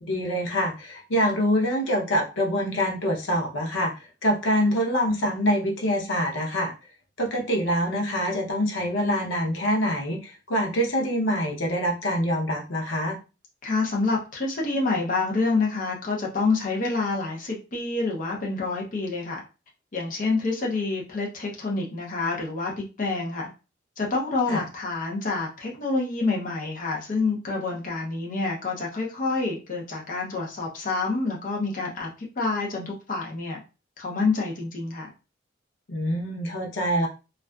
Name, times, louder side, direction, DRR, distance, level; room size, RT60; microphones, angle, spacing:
voice 1, 0.0-6.7 7.2-13.2 24.5-24.6 35.9-37.1, equal, 90° left, 0.7 m, -25 dB
voice 2, 13.6-19.4 19.9-23.5 24.0-32.1 32.4-33.6 34.0-35.1, left 3 dB, 45° left, 0.6 m, -27 dB
2.4 x 2.3 x 2.2 m
head